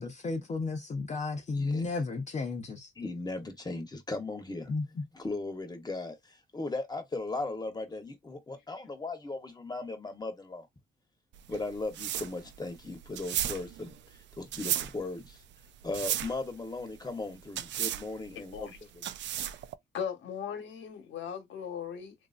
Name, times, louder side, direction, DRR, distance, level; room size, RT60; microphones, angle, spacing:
voice 1, 0.0-2.9 4.7-4.8, left 3 dB, 35° left, 0.8 m, -33 dB
voice 2, 1.5-1.8 3.0-4.7 5.1-6.1 6.5-10.7 11.5-13.9 14.4-15.4 15.8-18.7, left 3 dB, 20° left, 1.0 m, -37 dB
sound 1, 11.3-19.7, right 11 dB, 65° right, 0.4 m, -35 dB
voice 3, 19.9-22.1, left 8 dB, 70° left, 1.2 m, -38 dB
2.9 x 2.6 x 2.5 m
cardioid pair, 90°, 20 cm